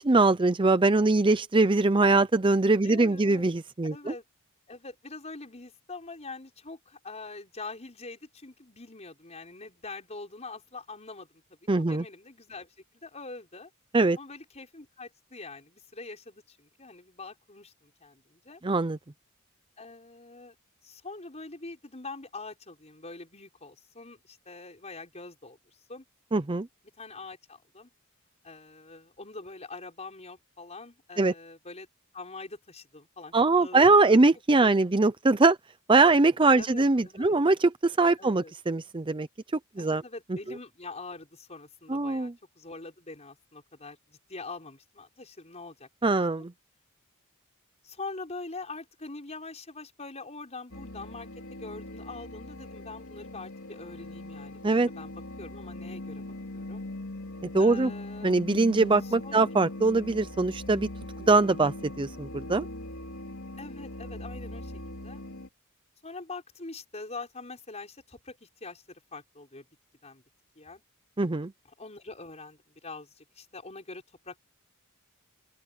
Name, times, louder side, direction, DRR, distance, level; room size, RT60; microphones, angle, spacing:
voice 1, 0.0-4.1 11.7-12.0 13.9-14.2 18.6-19.0 26.3-26.7 31.2-31.3 33.3-35.6 35.9-39.3 39.8-40.0 41.9-42.3 46.0-46.5 54.6-54.9 57.5-57.9 58.2-60.9 61.2-62.7 71.2-71.5, right 3 dB, 25° right, 0.6 m, -22 dB
voice 2, 2.8-3.4 3.8-4.2 4.7-11.3 11.8-13.7 14.2-18.6 19.8-20.6 20.8-26.0 27.0-27.9 28.4-31.9 32.1-34.2 34.6-35.0 35.9-36.2 36.6-37.3 38.2-38.5 39.8-45.9 47.8-56.2 56.5-56.8 57.6-58.4 59.0-59.5 63.6-65.2 66.0-69.7 70.0-70.2 70.6-70.8 71.8-74.4, left 3 dB, 30° left, 5.5 m, -44 dB
sound 1, 50.7-65.5, left 1 dB, 80° left, 3.4 m, -41 dB
open air
head